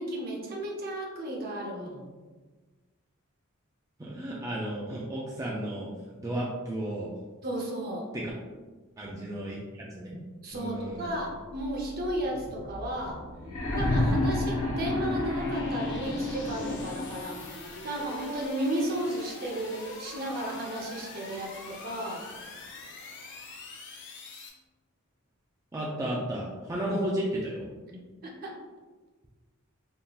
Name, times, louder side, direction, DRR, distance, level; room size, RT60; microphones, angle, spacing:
voice 1, 0.0-2.1 7.4-8.1 10.4-13.2 13.8-22.3 27.9-28.6, right 1 dB, 45° right, -1 dB, 0.6 m, -34 dB
voice 2, 4.0-5.9 6.2-7.1 8.1-8.3 9.0-10.1 10.5-11.1 25.7-27.7, right 1 dB, 15° right, -5 dB, 0.3 m, -33 dB
sound 1, 11.0-24.5, left 2 dB, 55° left, 0.5 m, -44 dB
sound 2, 13.5-17.3 18.5-18.6, left 1 dB, 75° left, 0.9 m, -29 dB
3.6 x 2.6 x 2.3 m, 1.3 s
head